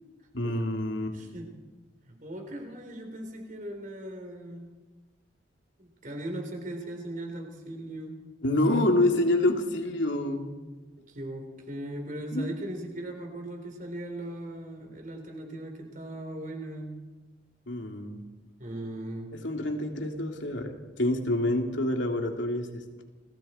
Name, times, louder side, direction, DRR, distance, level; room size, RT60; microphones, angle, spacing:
voice 1, 0.3-1.2 8.4-10.5 12.3-12.5 17.7-18.2 19.4-23.0, left 1 dB, 85° left, 3 dB, 2.9 m, -27 dB
voice 2, 1.1-1.5 2.1-4.7 5.8-8.2 11.0-17.0 18.6-19.3, right 1 dB, 45° right, 3 dB, 3.7 m, -38 dB
29.5 x 20.5 x 4.4 m, 1.3 s
head